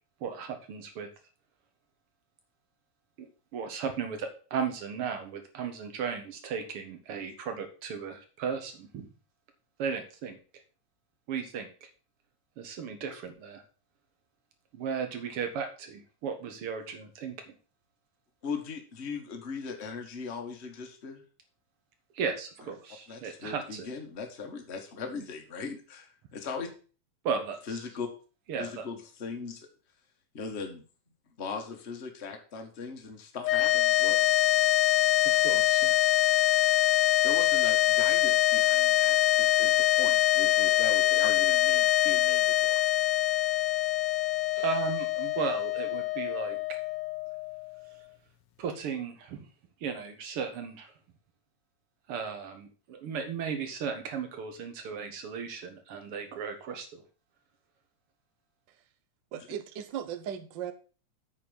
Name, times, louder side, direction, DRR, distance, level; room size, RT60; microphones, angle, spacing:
voice 1, 0.2-1.1 3.2-9.1 9.8-10.4 11.3-11.9 12.6-13.6 14.7-17.5 22.1-23.9 27.2-27.8 28.5-28.9 35.2-36.1 44.6-46.8 48.6-49.5 49.8-50.9 52.1-57.0, right 6 dB, 55° right, 6 dB, 2.1 m, -35 dB
voice 2, 18.4-21.2 23.1-26.7 27.7-28.1 28.6-29.7 30.3-30.8 31.4-34.3 37.0-42.8 59.3-59.5, left 5 dB, 35° left, 4 dB, 1.1 m, -39 dB
sound 1, 33.4-47.8, left 15 dB, 75° left, 1.5 m, -24 dB
voice 3, 59.3-60.7, right 9 dB, 80° right, 7 dB, 1.0 m, -37 dB
8.8 x 4.7 x 7.0 m, 0.37 s
omnidirectional pair, 3.5 m